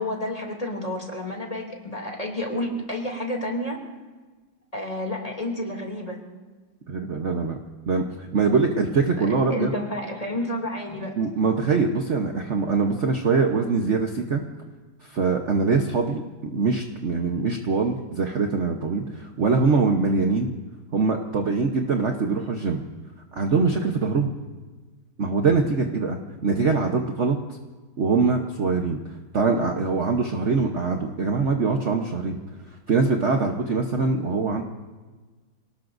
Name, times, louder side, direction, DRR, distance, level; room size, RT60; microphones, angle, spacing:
voice 1, 0.0-3.8 4.7-6.2 9.2-11.2, left 1 dB, 20° left, 0 dB, 2.8 m, -30 dB
voice 2, 6.9-7.6 7.9-9.7 11.2-14.4 15.0-16.2 16.5-20.5 20.9-22.8 23.3-24.3 25.2-27.4 28.0-29.0 29.3-32.4 32.9-34.6, right 4 dB, 45° right, 3 dB, 1.1 m, -23 dB
27.5 x 19.0 x 2.6 m, 1.3 s
omnidirectional pair, 2.1 m